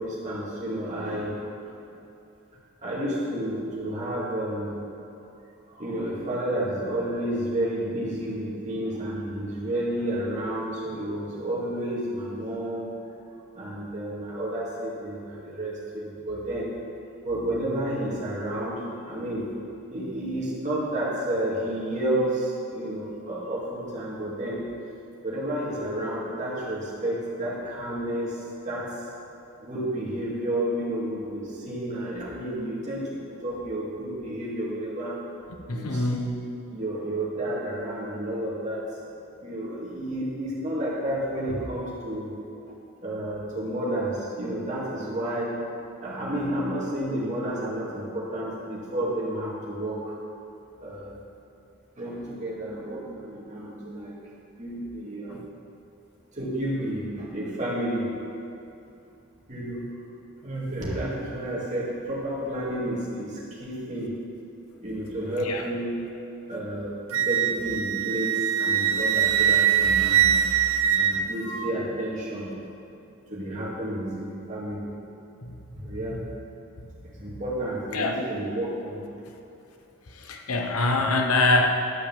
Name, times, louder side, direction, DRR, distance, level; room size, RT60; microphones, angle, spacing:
voice 1, 0.0-1.4 1.7-1.8 2.8-4.8 5.7-13.0 13.6-16.7 17.2-19.5 19.9-24.6 25.2-29.1 29.6-35.2 35.7-36.4 36.7-38.8 39.4-42.3 43.0-45.6 46.0-50.1 50.8-51.2 52.0-54.2 54.5-55.4 56.3-58.1 59.5-60.0 60.4-64.1 64.8-66.0 66.5-72.5 73.3-74.9 75.7-76.2 77.0-79.0, right 1 dB, 35° right, -6 dB, 2.4 m, -31 dB
voice 2, 35.7-36.3 55.3-55.4 65.4-65.6 75.4-75.6 75.9-76.3 77.9-78.2 80.1-81.7, left 2 dB, 90° left, 3 dB, 1.0 m, -25 dB
Wind instrument woodwind instrument, 67.1-71.7, right 9 dB, 70° right, 0.4 m, -22 dB
11.5 x 5.2 x 7.3 m, 2.7 s
head